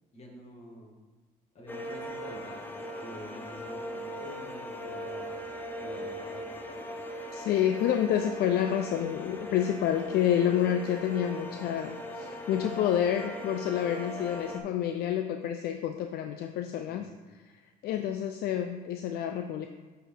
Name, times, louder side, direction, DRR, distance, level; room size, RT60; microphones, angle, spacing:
voice 1, 0.1-0.9 1.5-5.3 5.8-6.9 16.9-17.2, equal, 40° left, -3 dB, 2.1 m, -47 dB
sound 1, 1.7-14.6, equal, 10° left, 0.7 m, -39 dB
voice 2, 7.3-17.1 17.8-19.7, left 10 dB, 70° left, 6 dB, 0.4 m, -28 dB
8.0 x 4.5 x 3.8 m, 1.3 s
cardioid pair, 110°, 17 cm